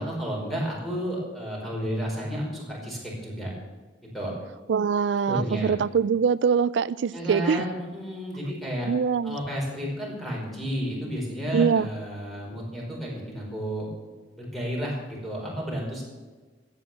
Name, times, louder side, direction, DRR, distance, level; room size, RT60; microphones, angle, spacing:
voice 1, 0.0-3.5 4.1-4.3 5.3-5.8 7.1-8.9 9.2-13.9 14.4-16.0, equal, ahead, -3 dB, 4.9 m, -31 dB
voice 2, 4.7-7.6 8.8-9.4 11.5-11.9, right 6 dB, 80° right, 17 dB, 0.4 m, -23 dB
14.0 x 9.3 x 7.3 m, 1.4 s
head